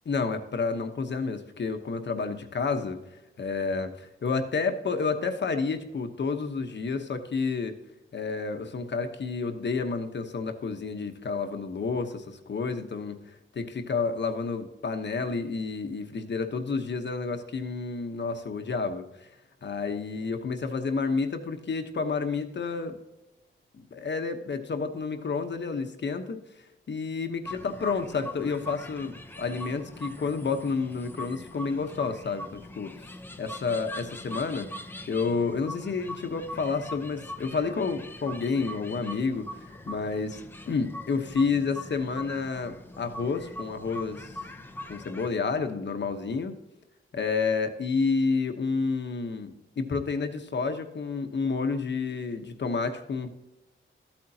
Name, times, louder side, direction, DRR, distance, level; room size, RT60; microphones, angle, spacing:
voice 1, 0.1-3.0 3.4-7.7 8.1-13.2 13.5-19.3 19.6-23.0 23.7-26.4 26.9-32.9 33.4-34.7 35.1-39.5 39.9-44.3 44.9-46.6 47.1-53.3, left 4 dB, 55° left, 7 dB, 1.0 m, -30 dB
sound 1, 27.5-45.3, left 1 dB, 10° left, 0.7 m, -42 dB
14.0 x 8.8 x 2.8 m, 0.94 s
wide cardioid pair, 150°, 21 cm